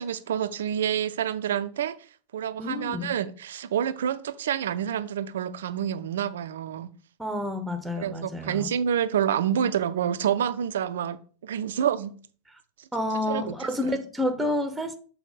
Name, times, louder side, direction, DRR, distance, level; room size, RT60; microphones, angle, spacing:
voice 1, 0.0-2.0 2.3-6.9 8.0-11.2 11.4-12.1 13.3-13.5 13.8-13.9, right 9 dB, 60° right, 0.5 m, -28 dB
voice 2, 2.6-3.1 7.2-8.7 12.9-15.0, left 1 dB, 5° right, 0.9 m, -29 dB
7.0 x 4.3 x 4.0 m
figure-of-eight pair, 90°, 0 cm